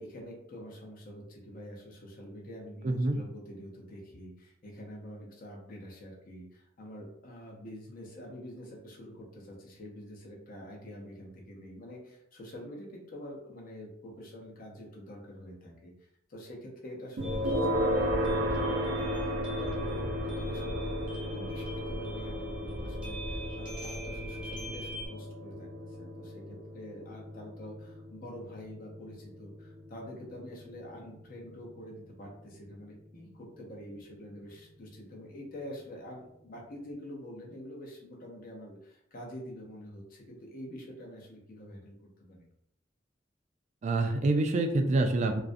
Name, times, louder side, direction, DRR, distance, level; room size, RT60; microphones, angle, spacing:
voice 1, 0.0-15.9 16.3-25.7 26.0-42.5, equal, 50° left, -1 dB, 0.6 m, -46 dB
voice 2, 2.8-3.2 43.8-45.4, right 2 dB, 40° right, 5 dB, 0.3 m, -26 dB
sound 1, 17.2-25.1, equal, 5° right, 0.6 m, -40 dB
sound 2, 17.2-32.1, equal, 90° right, 0.6 m, -35 dB
2.4 x 2.1 x 2.5 m, 0.76 s
head